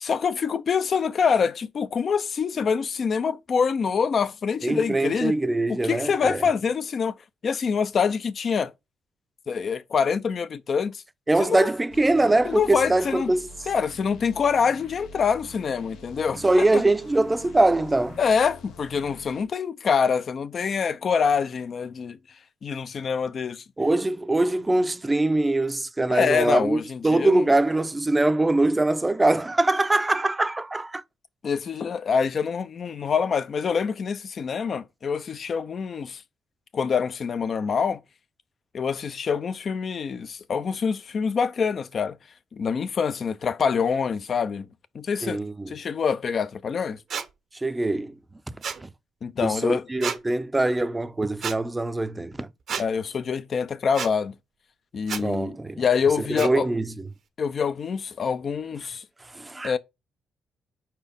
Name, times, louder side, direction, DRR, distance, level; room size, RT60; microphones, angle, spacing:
voice 1, 0.0-5.3 5.7-7.1 7.4-8.7 9.5-11.0 11.4-11.7 12.4-13.3 13.7-16.4 16.7-16.8 18.2-22.2 22.6-23.6 26.1-27.4 31.4-36.2 36.7-38.0 38.7-42.2 42.5-44.7 44.9-45.4 45.7-47.0 49.2-49.9 52.8-54.4 54.9-56.7 57.4-59.0 59.6-59.8, left 6 dB, 50° left, 0.6 m, -25 dB
voice 2, 4.6-6.5 11.3-13.5 16.4-18.2 23.8-31.0 45.2-45.7 47.5-48.2 48.8-48.9 49.4-52.5 55.2-55.8 56.3-57.0 59.3-59.7, right 2 dB, 15° right, 0.6 m, -23 dB
sound 1, 11.9-19.5, left 3 dB, 85° left, 1.2 m, -46 dB
sound 2, 47.1-47.3 48.6-48.8 50.0-50.2 51.4-51.6 52.7-52.9 53.9-54.1 55.1-55.2 56.4-56.5, right 7 dB, 60° right, 0.9 m, -30 dB
4.9 x 4.4 x 5.3 m
cardioid pair, 90°, 0 cm